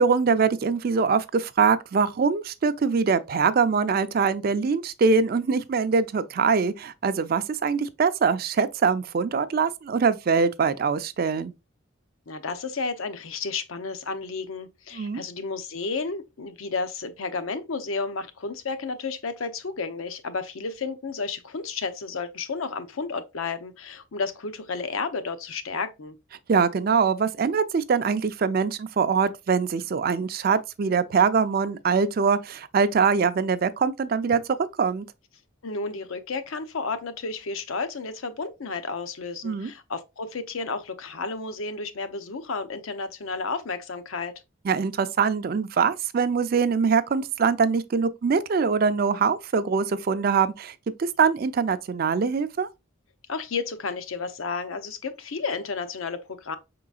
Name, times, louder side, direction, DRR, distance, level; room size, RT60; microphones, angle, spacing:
voice 1, 0.0-11.5 14.9-15.2 26.5-34.4 34.8-35.0 39.4-39.7 44.6-52.7, right 5 dB, 45° right, 0.4 m, -23 dB
voice 2, 12.3-26.1 35.6-44.3 53.3-56.6, left 4 dB, 80° left, 0.7 m, -32 dB
5.5 x 3.8 x 2.4 m
head